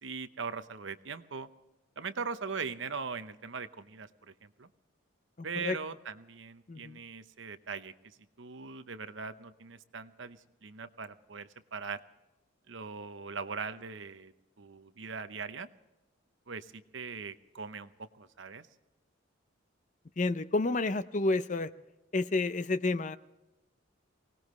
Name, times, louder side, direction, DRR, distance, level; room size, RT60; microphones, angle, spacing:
voice 1, 0.0-1.5 2.0-4.7 5.4-7.9 8.4-12.0 12.7-14.3 14.6-15.7 16.5-18.7, right 5 dB, 70° right, 11 dB, 0.8 m, -40 dB
voice 2, 5.4-5.8 6.7-7.0 20.2-21.7 22.1-23.2, left 3 dB, 40° left, 13 dB, 0.5 m, -30 dB
24.0 x 18.5 x 3.2 m, 1.0 s
head